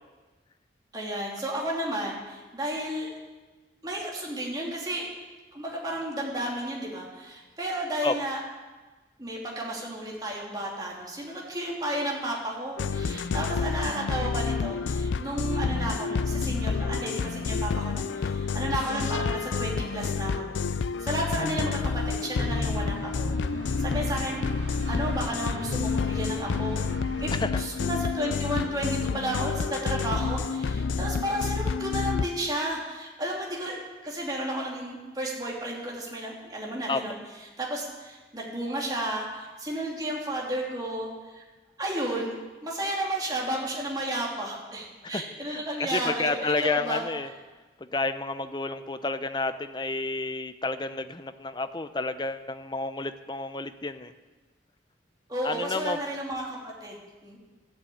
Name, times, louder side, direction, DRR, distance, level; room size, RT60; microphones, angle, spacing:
voice 1, 0.9-3.1 3.8-5.1 5.5-8.4 9.2-20.6 21.0-23.4 23.8-26.8 27.2-37.2 37.6-41.4 41.8-47.0 55.3-57.4, right 1 dB, 20° right, -3 dB, 2.8 m, -32 dB
sound 1, 12.8-32.3, left 5 dB, 90° left, 0.4 m, -29 dB
sound 2, 22.4-27.4, right 1 dB, 75° right, 1.1 m, -38 dB
voice 2, 45.5-47.3 47.8-54.1 55.4-56.0, left 3 dB, 25° left, 11 dB, 0.6 m, -30 dB
12.5 x 8.3 x 8.5 m, 1.3 s
head